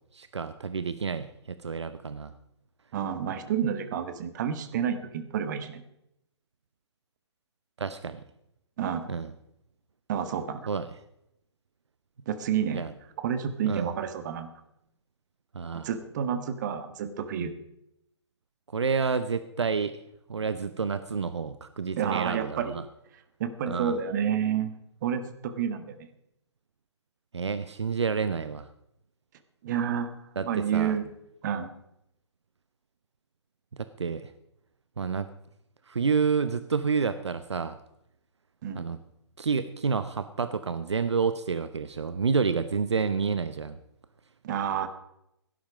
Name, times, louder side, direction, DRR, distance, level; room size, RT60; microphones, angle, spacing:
voice 1, 0.1-2.3 7.8-8.2 9.1-9.3 10.7-10.9 12.7-12.9 13.6-13.9 15.5-15.9 18.7-20.0 20.3-22.8 23.7-24.0 27.3-28.7 30.4-31.0 33.8-34.3 35.0-35.3 35.9-37.8 38.7-39.0 39.4-43.8, right 5 dB, 70° right, 12 dB, 0.9 m, -29 dB
voice 2, 2.9-5.8 8.8-9.1 10.1-10.7 12.3-12.9 13.2-14.5 15.7-17.5 22.0-22.8 23.4-24.7 25.0-26.1 29.6-31.1 31.4-31.7 38.6-38.9 44.4-44.9, right 8 dB, 40° right, 10 dB, 1.6 m, -30 dB
17.0 x 10.5 x 5.0 m, 0.81 s
figure-of-eight pair, 130°, 15 cm